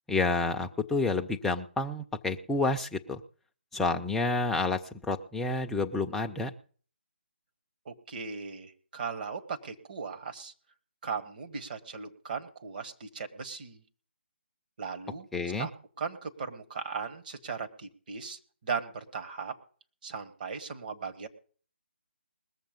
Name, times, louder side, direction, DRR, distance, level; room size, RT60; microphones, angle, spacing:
voice 1, 0.1-3.2 3.7-6.5 15.3-15.7, left 3 dB, 5° left, 3 dB, 0.5 m, -29 dB
voice 2, 7.8-10.5 11.0-13.8 14.8-15.3 15.6-15.7 16.0-19.5 20.0-21.3, right 5 dB, 45° right, 6 dB, 1.6 m, -37 dB
20.5 x 7.3 x 5.2 m, 0.43 s
figure-of-eight pair, 155°, 6 cm